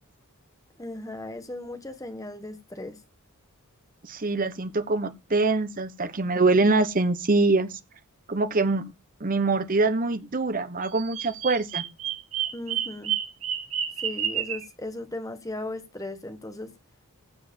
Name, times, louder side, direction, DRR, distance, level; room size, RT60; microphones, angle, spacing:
voice 1, 0.8-3.0 12.5-13.1 14.0-16.7, left 2 dB, 15° left, 1.2 m, -37 dB
voice 2, 4.0-7.8 8.3-8.8 9.2-11.8, right 3 dB, 40° right, 1.0 m, -24 dB
Bird vocalization bird call bird song, 10.8-14.7, right 10 dB, 70° right, 3.3 m, -30 dB
15.0 x 5.0 x 5.3 m
head